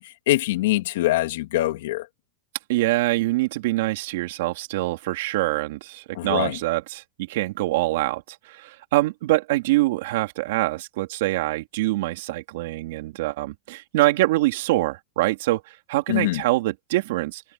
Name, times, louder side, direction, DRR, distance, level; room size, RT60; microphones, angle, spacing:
voice 1, 0.0-2.1 6.1-6.6 16.1-16.4, left 16 dB, 75° left, 2.6 m, -24 dB
voice 2, 2.7-17.4, right 18 dB, 70° right, 3.2 m, -24 dB
supercardioid pair, 150°, 0 cm